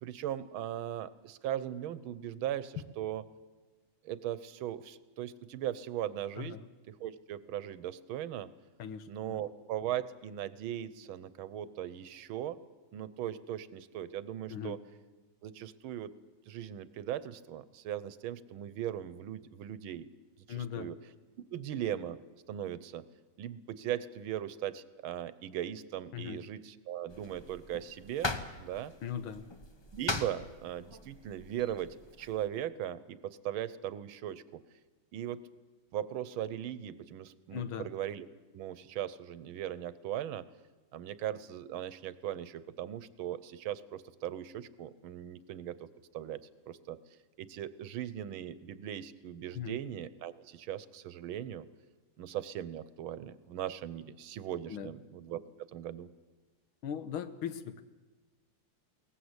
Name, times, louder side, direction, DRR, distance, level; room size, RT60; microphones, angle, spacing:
voice 1, 0.0-3.2 4.0-6.6 6.9-8.5 9.1-12.6 12.9-14.8 15.4-16.1 16.5-20.1 20.5-21.0 21.5-22.2 22.5-23.0 23.4-28.3 28.6-28.9 29.9-34.6 35.1-35.4 35.9-38.3 38.5-40.5 40.9-45.9 46.1-47.0 47.4-51.7 52.2-56.1, right 11 dB, 85° right, 16 dB, 1.7 m, -39 dB
voice 2, 6.4-6.7 8.8-9.4 14.5-14.8 20.5-20.9 26.1-26.4 29.0-29.5 37.5-37.9 49.5-49.8 54.7-54.9 56.8-57.8, left 8 dB, 85° left, 11 dB, 1.9 m, -39 dB
sound 1, 27.1-32.5, left 2 dB, 25° left, 0.6 m, -41 dB
22.0 x 18.5 x 8.1 m, 1.2 s
omnidirectional pair, 2.2 m